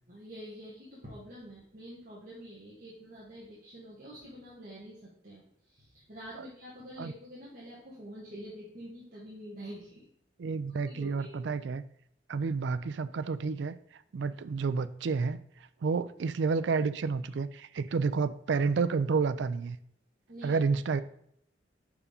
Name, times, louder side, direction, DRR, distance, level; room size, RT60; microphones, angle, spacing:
voice 1, 0.1-10.0 10.7-11.5 20.3-20.6, equal, 45° right, -7 dB, 1.5 m, -47 dB
voice 2, 10.4-11.8 12.3-13.8 14.1-15.4 15.8-19.8 20.4-21.0, right 4 dB, 75° right, 14 dB, 0.4 m, -30 dB
5.4 x 4.9 x 5.0 m, 0.71 s
head